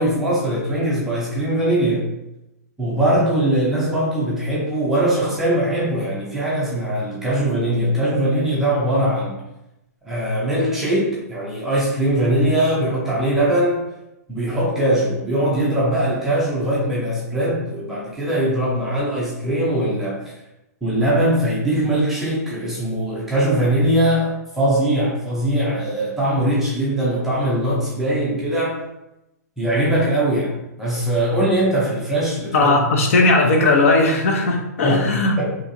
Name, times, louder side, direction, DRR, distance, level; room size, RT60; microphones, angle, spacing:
voice 1, 0.0-2.1 2.8-9.4 10.0-13.8 14.3-20.2 20.8-28.8 29.6-32.9 34.8-35.6, right 1 dB, 5° right, -6 dB, 0.4 m, -21 dB
voice 2, 32.5-35.4, left 2 dB, 50° left, 2 dB, 0.7 m, -17 dB
4.3 x 2.8 x 2.5 m, 0.90 s
hypercardioid pair, 175°, 9 cm